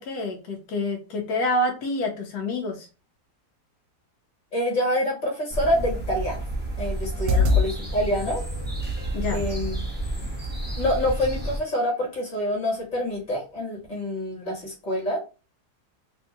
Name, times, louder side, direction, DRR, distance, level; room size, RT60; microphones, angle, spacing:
voice 1, 0.0-2.9 7.3-7.7 9.1-9.5, left 1 dB, 80° left, 1 dB, 1.2 m, -28 dB
voice 2, 4.5-6.4 6.8-8.4 9.3-9.8 10.2-10.3 10.8-15.2, equal, 30° left, -2 dB, 1.5 m, -26 dB
sound 1, 5.5-11.6, right 2 dB, 10° right, 0.6 m, -30 dB
sound 2, 7.1-7.7 8.3-9.3 10.3-10.4 11.0-11.3 11.7-12.0 12.4-12.5, left 3 dB, 80° right, 1.1 m, -25 dB
3.6 x 2.6 x 2.4 m, 0.32 s
omnidirectional pair, 1.7 m